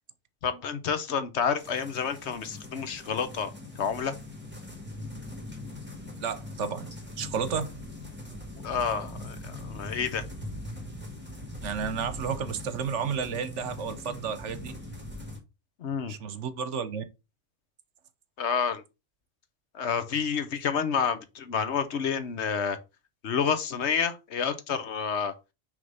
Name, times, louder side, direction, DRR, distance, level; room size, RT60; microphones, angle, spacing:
voice 1, 0.4-4.1 8.6-10.2 15.8-16.1 18.4-18.8 19.7-22.8 23.2-25.3, left 6 dB, 65° left, 1.1 m, -29 dB
sound 1, 1.6-15.4, left 1 dB, 10° right, 1.6 m, -41 dB
voice 2, 6.2-6.9 7.2-7.7 11.6-14.7 16.1-17.0, right 6 dB, 70° right, 1.1 m, -32 dB
6.3 x 3.6 x 5.4 m
omnidirectional pair, 1.3 m